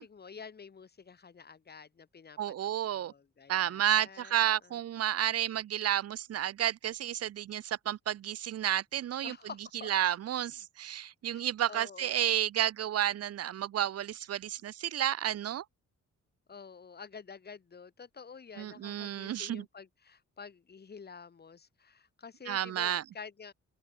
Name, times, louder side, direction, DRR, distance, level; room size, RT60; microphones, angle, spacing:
voice 1, 0.0-4.8 9.2-9.9 11.3-11.4 11.7-12.4 16.5-23.5, left 5 dB, 30° left, 3.0 m, -49 dB
voice 2, 2.4-3.1 3.5-9.4 9.8-15.6 18.6-19.6 22.5-23.0, right 11 dB, 55° right, 0.6 m, -31 dB
open air
wide cardioid pair, 165°, 30 cm